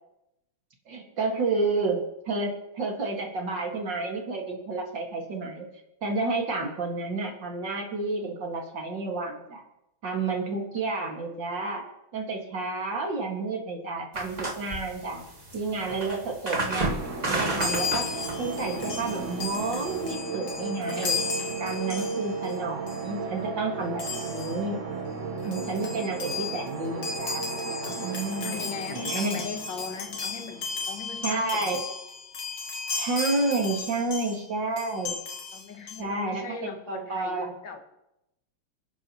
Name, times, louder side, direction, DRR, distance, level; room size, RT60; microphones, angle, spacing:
voice 1, 0.9-5.7 6.0-9.6 10.0-11.8 12.1-15.2 15.5-16.9 17.3-21.2 21.6-24.8 25.4-27.5 28.0-29.4 31.2-31.8 33.0-35.2 36.0-37.5, right 3 dB, 60° right, 1 dB, 2.8 m, -30 dB
sound 1, 14.1-20.1, right 2 dB, 20° right, 1.8 m, -33 dB
sound 2, 16.5-31.2, right 4 dB, 40° right, 1.4 m, -35 dB
Chime, 17.6-22.6 22.9-23.1 24.0-24.6 25.2-25.3 25.4-34.4 34.8-36.0, left 5 dB, 85° left, 2.6 m, -35 dB
voice 2, 28.3-31.8 35.5-37.8, left 6 dB, 65° left, 5 dB, 1.9 m, -39 dB
29.0 x 10.0 x 3.1 m, 0.88 s
omnidirectional pair, 2.2 m